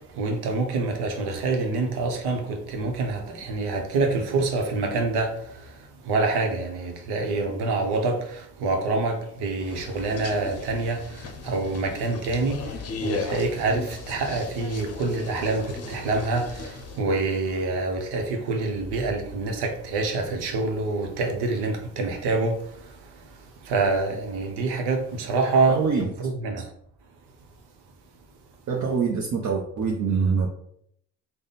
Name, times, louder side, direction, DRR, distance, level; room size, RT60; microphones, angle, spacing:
voice 1, 0.2-5.3 6.1-8.2 8.6-11.0 11.4-12.6 13.0-16.5 17.0-22.6 23.7-26.6, right 3 dB, 85° right, 0.8 m, -26 dB
sound 1, 9.6-17.0, left 4 dB, 40° left, 0.6 m, -36 dB
voice 2, 25.7-26.1 28.7-30.5, right 5 dB, 50° right, 0.7 m, -24 dB
3.5 x 2.1 x 4.0 m
cardioid pair, 90°, 38 cm